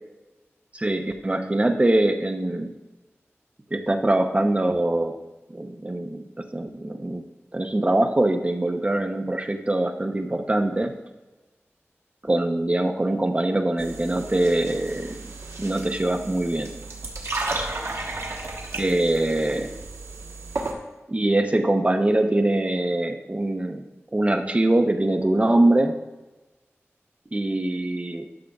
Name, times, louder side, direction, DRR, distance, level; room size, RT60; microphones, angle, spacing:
voice 1, 0.7-2.7 3.7-5.1 5.5-7.2 7.5-10.9 12.2-15.1 15.6-16.7 18.7-19.7 21.1-23.8 24.1-26.0 27.3-28.3, right 1 dB, 25° right, 5 dB, 0.8 m, -23 dB
sound 1, 13.8-20.7, right 2 dB, 85° right, 1.2 m, -33 dB
12.5 x 6.6 x 2.4 m, 1.1 s
wide cardioid pair, 75°, 5 cm